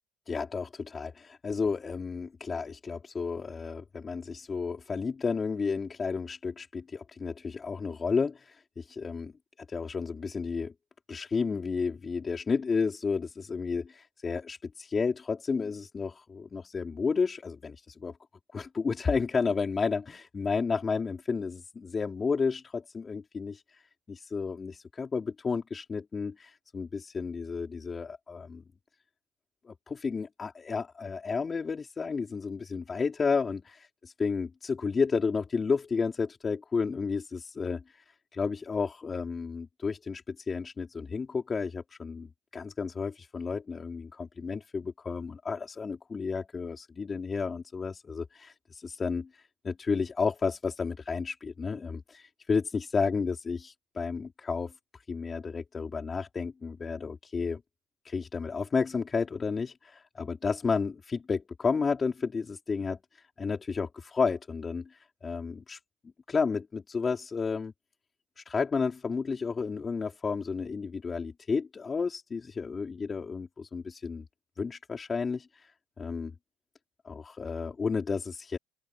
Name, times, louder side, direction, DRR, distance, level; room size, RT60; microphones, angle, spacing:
voice 1, 0.3-9.3 9.7-10.7 11.1-18.1 18.5-28.6 29.6-57.6 58.0-65.8 66.3-67.7 68.4-74.2 74.6-76.3 77.0-78.6, left 5 dB, 25° left, 4.5 m, -32 dB
open air
supercardioid pair, 105°, 0 cm